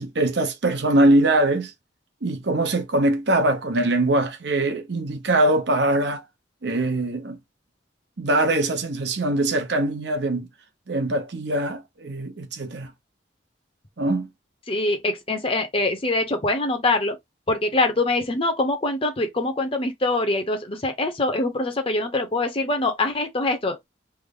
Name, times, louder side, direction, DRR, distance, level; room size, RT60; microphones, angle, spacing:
voice 1, 0.0-1.7 2.2-6.2 6.6-7.4 8.2-10.5 10.9-12.9 14.0-14.3, right 1 dB, 65° right, 0.8 m, -22 dB
voice 2, 14.7-17.2 17.5-23.9, left 2 dB, 30° left, 0.8 m, -24 dB
3.3 x 2.1 x 3.7 m
head